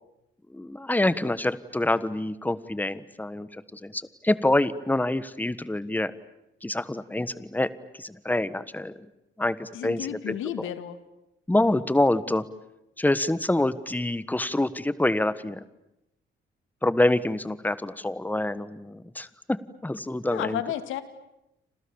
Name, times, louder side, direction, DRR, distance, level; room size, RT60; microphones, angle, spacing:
voice 1, 0.5-6.1 6.6-8.9 9.4-10.3 11.5-12.4 13.0-15.6 16.8-20.6, left 1 dB, 10° left, 15 dB, 1.4 m, -26 dB
voice 2, 9.7-11.0 20.3-21.0, left 11 dB, 85° left, 11 dB, 2.4 m, -32 dB
29.5 x 27.0 x 7.2 m, 0.88 s
cardioid pair, 90°, 20 cm